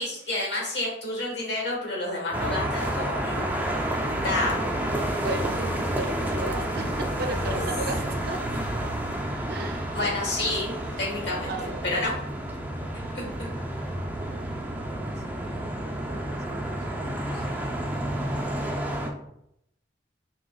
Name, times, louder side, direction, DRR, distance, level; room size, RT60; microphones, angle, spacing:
voice 1, 0.0-3.5 4.2-4.6 8.5-8.6 9.9-12.2 13.1-13.3, left 2 dB, 70° left, -3 dB, 1.5 m, -29 dB
sound 1, 2.3-19.1, right 1 dB, 10° right, 0.4 m, -30 dB
voice 2, 5.1-8.4 9.5-10.1 10.9-11.1 11.5-12.2 15.0-15.2 15.4-16.7 17.0-17.6, right 2 dB, 60° right, 4 dB, 0.5 m, -36 dB
5.4 x 2.2 x 2.4 m, 0.78 s
head